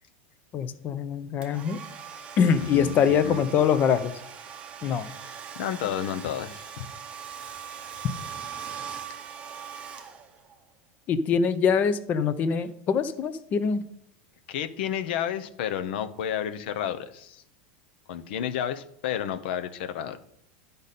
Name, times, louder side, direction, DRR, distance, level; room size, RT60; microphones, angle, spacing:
voice 1, 0.5-1.8 2.4-4.1 4.8-5.1 11.1-13.8, left 7 dB, 30° left, 12 dB, 0.6 m, -24 dB
Domestic sounds home sounds, 1.4-10.6, right 8 dB, 20° right, 0.7 m, -41 dB
voice 2, 2.6-3.4 5.6-6.8 14.5-17.4 18.1-20.2, left 9 dB, 65° left, 11 dB, 0.7 m, -31 dB
10.0 x 5.2 x 4.1 m, 0.70 s
supercardioid pair, 160°, 6 cm